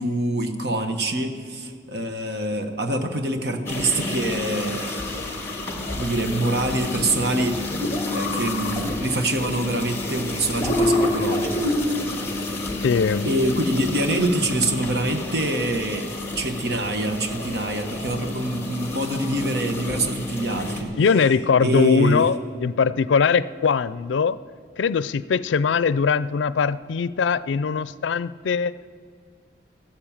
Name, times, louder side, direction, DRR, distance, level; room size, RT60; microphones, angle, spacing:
voice 1, 0.0-5.0 5.9-11.7 13.2-16.1 16.3-20.9 21.6-22.2, right 1 dB, 65° right, 6 dB, 1.3 m, -25 dB
sound 1, 3.7-20.8, left 2 dB, 15° left, 1.8 m, -28 dB
voice 2, 12.8-13.3 21.0-24.4 24.8-28.7, left 5 dB, 90° left, 17 dB, 0.4 m, -21 dB
14.5 x 12.0 x 7.3 m, 2.1 s
head